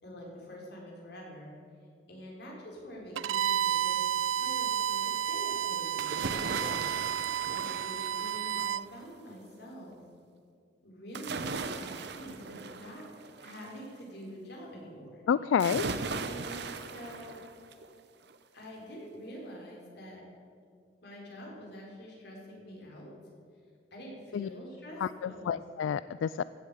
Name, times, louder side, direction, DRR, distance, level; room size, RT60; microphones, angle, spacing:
voice 1, 0.0-1.5 2.1-4.1 4.4-6.8 7.4-10.0 10.8-13.1 13.4-15.2 16.2-17.5 18.5-20.3 21.0-23.1 23.9-25.6, equal, 60° left, -2 dB, 4.3 m, -46 dB
Bowed string instrument, 3.1-8.8, right 9 dB, 80° right, 0.4 m, -31 dB
sound 1, 6.0-8.8 11.1-13.8 15.6-17.9 18.3-18.4, right 4 dB, 60° right, 0.9 m, -38 dB
voice 2, 15.3-15.9 24.3-24.5 25.0-26.4, left 7 dB, 85° left, 15 dB, 0.3 m, -29 dB
15.5 x 8.5 x 8.3 m, 2.2 s
head